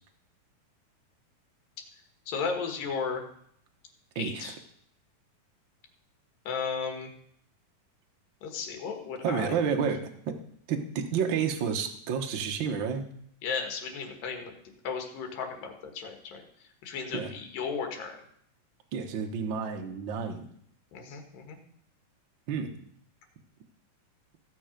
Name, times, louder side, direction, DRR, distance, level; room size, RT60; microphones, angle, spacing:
voice 1, 2.3-3.2 4.2-4.5 6.5-7.1 8.4-9.5 13.4-14.5 14.8-16.4 16.8-18.2 20.9-21.6, left 5 dB, 80° left, 3 dB, 3.3 m, -34 dB
voice 2, 4.1-4.5 9.2-10.3 10.7-13.1 17.1-17.3 18.9-20.5 22.5-22.7, right 6 dB, 70° right, 3 dB, 1.1 m, -30 dB
15.0 x 7.0 x 5.1 m, 0.68 s
omnidirectional pair, 3.9 m